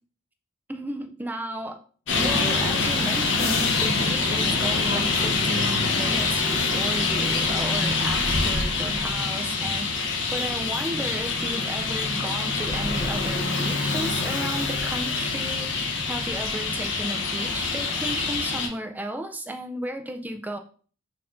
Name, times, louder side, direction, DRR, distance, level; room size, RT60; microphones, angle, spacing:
voice 1, 0.7-1.8 2.2-20.6, right 1 dB, 10° right, 6 dB, 0.3 m, -34 dB
Traffic noise roadway noise, 2.1-18.7, left 3 dB, 60° left, 0.8 m, -25 dB
sound 1, 2.1-7.4, left 1 dB, 30° left, 0.7 m, -42 dB
sound 2, 3.3-6.1, left 3 dB, 80° left, 1.0 m, -36 dB
4.2 x 2.5 x 4.3 m, 0.42 s
head